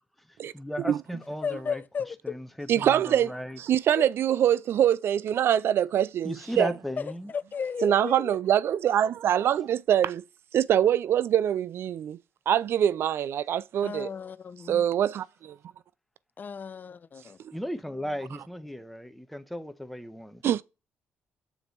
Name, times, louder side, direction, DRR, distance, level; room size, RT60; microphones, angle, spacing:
voice 1, 0.2-1.8 2.2-3.6 6.2-7.3 17.5-20.4, equal, ahead, 1.1 m, -36 dB
voice 2, 1.4-2.4 4.0-4.1 7.0-8.4 13.8-14.9 16.4-17.4, left 6 dB, 45° left, 0.6 m, -34 dB
voice 3, 2.7-3.3 3.7-6.7 7.8-10.2 10.5-12.2 12.5-14.1 14.7-15.6 20.4-20.6, right 10 dB, 65° right, 0.4 m, -24 dB
7.1 x 3.9 x 4.5 m
supercardioid pair, 65°, 4 cm